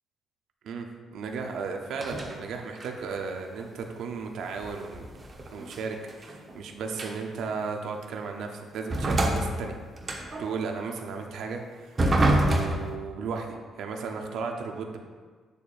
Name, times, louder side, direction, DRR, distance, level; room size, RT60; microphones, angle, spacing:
voice 1, 0.6-5.1 5.5-9.7 10.4-12.0 12.5-15.0, right 5 dB, 75° right, 3 dB, 0.7 m, -35 dB
sound 1, 1.9-2.4 2.8-3.1 4.6-6.6 7.0-7.4 8.0-8.1 8.9-10.4 12.0-12.9, right 1 dB, 30° right, 1.1 m, -26 dB
8.2 x 6.9 x 2.5 m, 1.5 s
cardioid pair, 90°, 0 cm